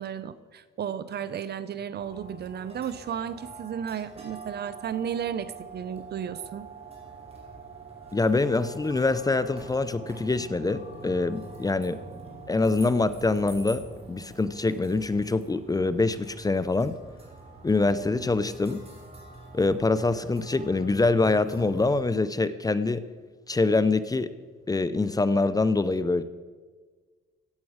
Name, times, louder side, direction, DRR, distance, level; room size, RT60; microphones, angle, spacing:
voice 1, 0.0-6.7, right 8 dB, 55° right, 15 dB, 0.8 m, -34 dB
sound 1, 2.0-21.9, right 3 dB, 30° right, 5.2 m, -45 dB
voice 2, 8.1-12.0 12.5-17.0 17.6-18.8 19.5-23.0 23.5-24.3 24.7-26.2, left 3 dB, 20° left, 14 dB, 0.7 m, -25 dB
15.5 x 8.4 x 6.4 m, 1.4 s
cardioid pair, 90°, 20 cm